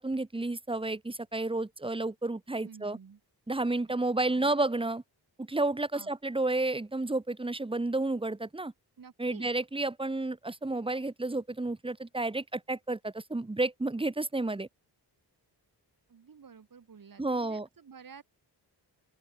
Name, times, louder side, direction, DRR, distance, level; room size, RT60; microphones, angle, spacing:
voice 1, 0.0-3.0 3.5-5.0 5.4-8.7 9.2-14.7 17.2-17.7, right 2 dB, 15° right, 1.2 m, -31 dB
voice 2, 2.6-3.2 4.2-4.5 5.9-6.1 9.0-9.5 16.1-18.2, right 6 dB, 55° right, 6.9 m, -51 dB
open air
wide cardioid pair, 120°, 41 cm